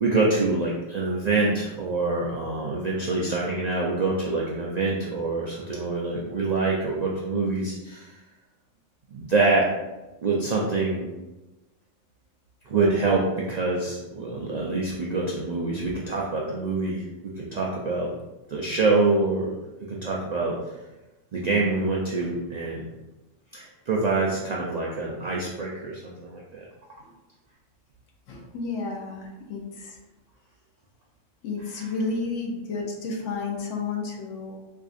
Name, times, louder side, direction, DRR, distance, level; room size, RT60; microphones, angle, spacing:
voice 1, 0.0-8.2 9.1-9.7 10.2-11.1 12.7-17.0 17.4-18.1 18.5-19.5 19.9-20.6 21.3-22.9 23.5-26.7, right 3 dB, 70° right, -4 dB, 0.4 m, -25 dB
voice 2, 28.3-30.0 31.4-34.6, left 3 dB, 80° left, 1 dB, 1.0 m, -31 dB
4.6 x 2.5 x 2.4 m, 1.1 s
omnidirectional pair, 1.3 m